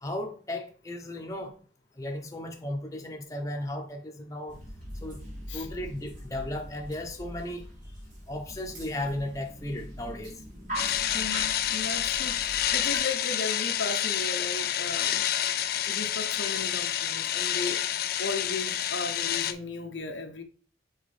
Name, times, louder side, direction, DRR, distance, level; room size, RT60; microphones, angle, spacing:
voice 1, 0.0-1.5 2.0-4.6 5.0-5.2 5.5-7.7 8.3-10.4, left 1 dB, 20° left, 0.8 m, -35 dB
sound 1, 4.5-13.0, equal, 45° right, 3.2 m, -42 dB
sound 2, 10.7-19.5, left 11 dB, 55° left, 0.4 m, -28 dB
voice 2, 11.1-15.3 15.8-17.8 18.2-20.4, left 3 dB, 85° left, 0.9 m, -36 dB
6.5 x 4.3 x 3.4 m
head